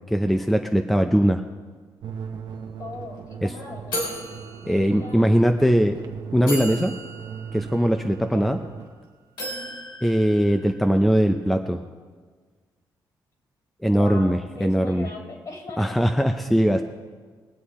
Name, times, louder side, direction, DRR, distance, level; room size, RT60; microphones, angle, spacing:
voice 1, 0.1-1.4 3.4-3.5 4.6-6.0 6.3-6.9 7.5-8.6 10.0-11.8 13.8-15.1 15.8-16.8, equal, ahead, 5 dB, 0.6 m, -20 dB
sound 1, 2.0-8.9, right 7 dB, 65° right, 0.9 m, -38 dB
sound 2, 2.6-2.7 2.9-3.2 3.9-5.3 6.0-6.1 6.5-8.9 9.4-11.0, equal, 80° left, 3.9 m, -35 dB
voice 2, 2.8-4.2 4.7-5.4 8.2-8.5 9.5-9.8 13.9-16.0, left 3 dB, 50° left, 0 dB, 3.0 m, -39 dB
22.0 x 8.6 x 4.3 m, 1.5 s
cardioid pair, 140°, 8 cm